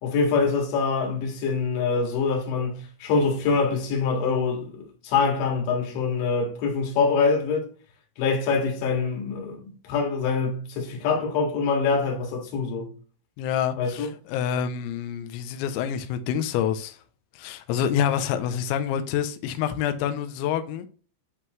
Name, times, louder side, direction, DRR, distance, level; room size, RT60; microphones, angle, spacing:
voice 1, 0.0-7.7 8.2-12.9 13.8-14.1, left 4 dB, 65° left, 4.0 m, -25 dB
voice 2, 13.4-17.0 17.4-20.9, left 9 dB, 85° left, 2.8 m, -27 dB
11.0 x 3.7 x 3.0 m
omnidirectional pair, 5.8 m